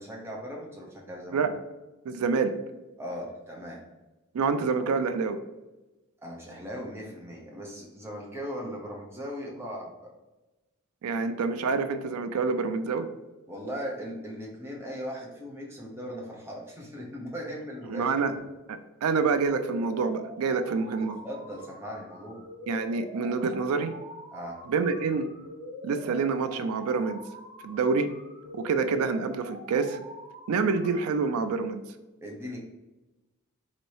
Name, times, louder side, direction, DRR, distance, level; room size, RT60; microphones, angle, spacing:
voice 1, 0.0-1.5 3.0-3.8 6.2-10.1 13.5-18.1 21.0-22.4 24.3-24.6 32.2-32.6, equal, 10° right, -2 dB, 0.6 m, -38 dB
voice 2, 2.0-2.5 4.3-5.4 11.0-13.1 17.9-18.4 18.7-21.2 22.7-23.9 24.7-25.3 25.8-27.2 27.6-28.1 28.5-30.0 30.5-31.8, right 4 dB, 80° right, 9 dB, 0.4 m, -27 dB
sound 1, 19.5-31.5, left 1 dB, 45° right, 1.3 m, -45 dB
4.1 x 2.6 x 3.1 m, 1.1 s
head